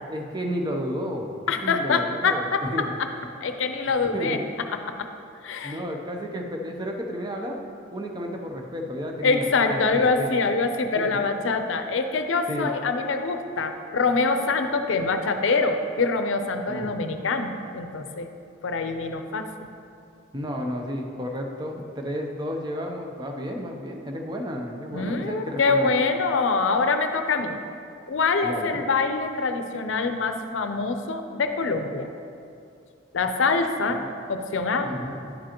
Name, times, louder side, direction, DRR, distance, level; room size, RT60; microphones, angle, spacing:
voice 1, 0.1-1.3 1.6-2.9 4.0-4.4 5.6-7.6 7.9-10.3 11.0-11.2 12.5-12.7 16.7-16.9 20.3-25.9 28.4-28.8 33.9-34.1 34.8-35.4, equal, 20° right, 2 dB, 0.6 m, -32 dB
voice 2, 1.5-3.1 3.4-4.4 5.0-5.1 5.4-5.8 9.2-18.3 18.6-19.5 24.9-27.6 28.1-32.1 33.1-34.9, left 4 dB, 80° left, 7 dB, 0.5 m, -25 dB
10.5 x 7.4 x 2.9 m, 2.5 s
head